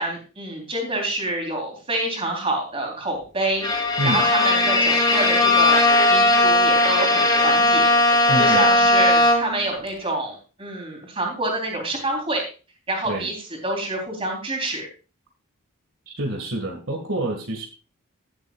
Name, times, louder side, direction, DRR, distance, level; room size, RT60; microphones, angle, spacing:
voice 1, 0.0-7.9 8.4-12.4 12.9-13.3 13.6-14.8, right 2 dB, 25° right, 1 dB, 3.5 m, -27 dB
Bowed string instrument, 3.6-9.7, left 2 dB, 20° left, 1.8 m, -18 dB
voice 2, 8.3-8.7 13.0-13.3 16.1-17.7, right 1 dB, 65° right, 3 dB, 1.9 m, -27 dB
17.0 x 8.0 x 2.4 m, 0.34 s
head